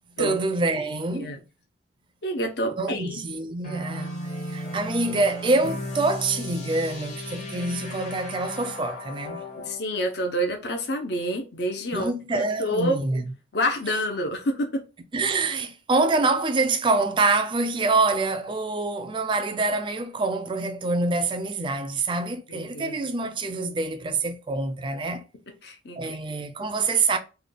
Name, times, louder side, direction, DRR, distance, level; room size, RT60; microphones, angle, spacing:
voice 1, 0.2-1.4 2.8-9.4 11.9-13.3 15.1-25.2 26.0-27.2, right 3 dB, 25° right, 0.4 m, -26 dB
voice 2, 2.2-3.1 9.7-12.1 12.6-13.0 13.5-14.8 22.5-23.0 25.6-26.2, equal, 60° left, 0.6 m, -28 dB
sound 1, 3.6-9.8, left 1 dB, 40° left, 1.0 m, -35 dB
3.3 x 2.2 x 3.6 m
head